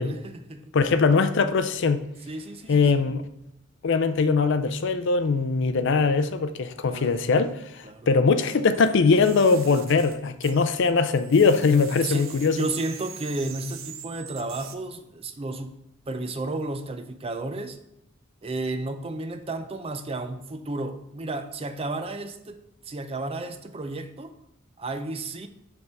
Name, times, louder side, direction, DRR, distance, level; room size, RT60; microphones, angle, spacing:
voice 1, 0.0-0.7 2.3-2.9 5.8-6.1 6.9-7.5 7.8-8.1 12.0-17.8 18.4-24.3 24.8-25.5, right 2 dB, 30° right, 0.5 m, -33 dB
voice 2, 0.7-2.0 2.7-3.2 3.8-12.6, left 4 dB, 60° left, 0.5 m, -21 dB
sound 1, 8.7-10.9 11.2-14.7, right 8 dB, 70° right, 0.7 m, -43 dB
6.6 x 3.6 x 5.8 m
head